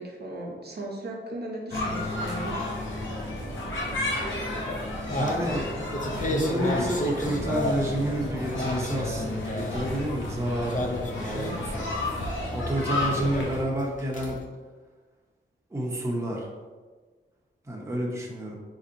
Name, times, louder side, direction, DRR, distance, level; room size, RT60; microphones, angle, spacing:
voice 1, 0.0-2.7 3.6-4.0 12.9-13.2, right 1 dB, 55° right, -1 dB, 0.7 m, -38 dB
sound 1, 1.7-13.6, left 1 dB, 70° left, 0.8 m, -32 dB
sound 2, 4.2-8.1 8.4-10.0 10.7-11.8 12.2-12.6 13.1-14.4, left 1 dB, 40° left, 0.5 m, -32 dB
voice 2, 5.1-5.7 6.2-10.9 11.2-11.9 12.5-14.4 15.7-16.5 17.7-18.6, right 1 dB, 15° right, -3 dB, 0.6 m, -29 dB
4.2 x 2.8 x 2.5 m, 1.4 s
wide cardioid pair, 95°, 20 cm